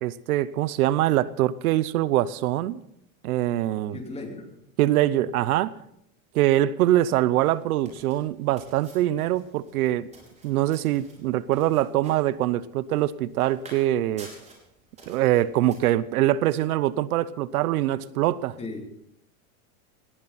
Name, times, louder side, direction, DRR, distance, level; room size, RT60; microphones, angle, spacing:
voice 1, 0.0-2.8 3.2-4.0 4.8-5.7 6.3-10.1 10.4-14.3 15.1-18.6, right 14 dB, 85° right, 18 dB, 0.8 m, -23 dB
voice 2, 3.9-4.6 18.6-18.9, left 3 dB, 15° left, 3 dB, 2.8 m, -36 dB
sound 1, 7.0-15.8, right 2 dB, 15° right, 5.1 m, -51 dB
19.0 x 15.0 x 4.2 m, 0.76 s
supercardioid pair, 145°, 43 cm